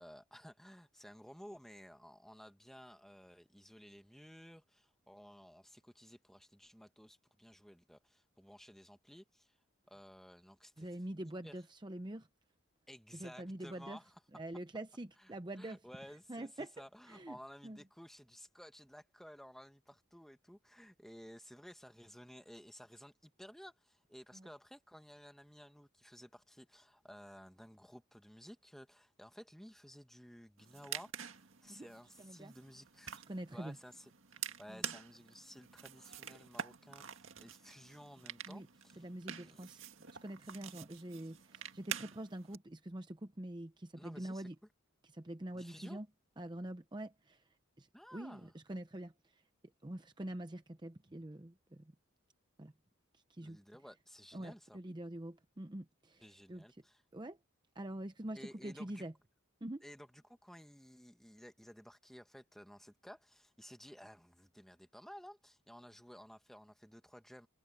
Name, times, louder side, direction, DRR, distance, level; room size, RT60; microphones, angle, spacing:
voice 1, 0.0-9.6 9.9-10.9 11.4-11.6 12.9-14.2 15.2-33.2 33.5-39.1 39.4-39.7 43.9-44.5 45.5-46.0 47.9-48.5 53.4-54.8 56.2-57.0 58.3-59.0 59.8-67.5, equal, ahead, 1.4 m, -55 dB
voice 2, 10.8-12.3 13.2-14.0 14.3-15.8 16.3-16.7 17.1-17.4 17.6-17.8 24.3-24.5 31.7-31.9 32.2-32.5 33.3-33.8 34.7-34.9 38.5-38.7 39.0-39.8 40.2-44.5 45.1-46.1 46.4-47.4 47.8-49.4 49.8-51.9 52.6-52.7 53.1-53.6 54.3-56.2 56.5-56.6 57.1-57.4 57.7-59.1 59.6-59.8, right 1 dB, 20° right, 0.7 m, -45 dB
sound 1, 30.6-42.6, right 9 dB, 65° right, 2.0 m, -47 dB
head